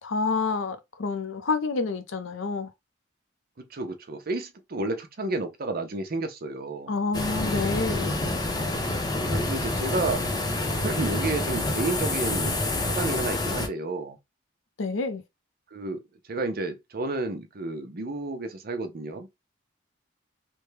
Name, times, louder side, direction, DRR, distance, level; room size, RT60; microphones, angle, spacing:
voice 1, 0.0-2.7 6.9-8.1 14.8-15.2, left 4 dB, 75° left, 0.6 m, -28 dB
voice 2, 3.7-6.9 9.2-10.2 10.7-12.6 12.9-14.2 15.7-16.0 16.3-19.3, right 2 dB, 50° right, 0.7 m, -31 dB
sound 1, 7.1-13.7, left 2 dB, 20° left, 0.6 m, -27 dB
3.4 x 2.2 x 3.2 m
head